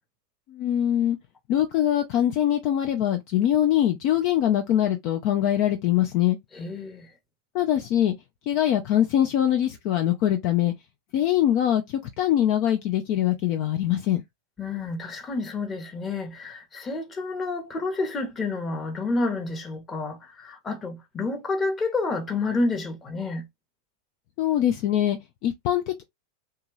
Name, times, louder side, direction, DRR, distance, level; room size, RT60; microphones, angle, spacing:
voice 1, 0.5-1.2 1.5-6.4 7.5-8.1 8.5-10.7 11.1-11.8 12.2-14.2 24.4-26.0, left 11 dB, 45° left, 0.4 m, -23 dB
voice 2, 6.5-7.1 14.6-23.5, left 3 dB, 20° left, 0.9 m, -29 dB
2.9 x 2.3 x 3.0 m
figure-of-eight pair, 90°, 0 cm